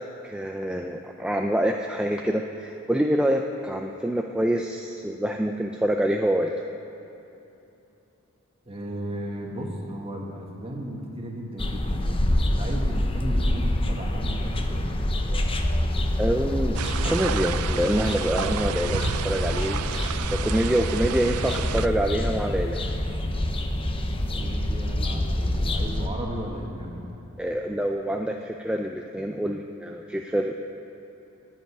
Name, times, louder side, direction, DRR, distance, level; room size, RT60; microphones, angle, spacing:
voice 1, 0.0-6.5 16.2-16.8 17.0-19.8 20.4-22.8 27.4-30.5, right 1 dB, 5° right, 2 dB, 0.4 m, -26 dB
voice 2, 8.7-15.2 24.3-27.1, equal, 25° right, 0 dB, 1.6 m, -35 dB
sound 1, 11.6-26.1, left 1 dB, 25° left, 0.7 m, -26 dB
sound 2, 16.7-21.9, right 8 dB, 75° right, 0.4 m, -32 dB
10.5 x 7.9 x 9.7 m, 3.0 s
head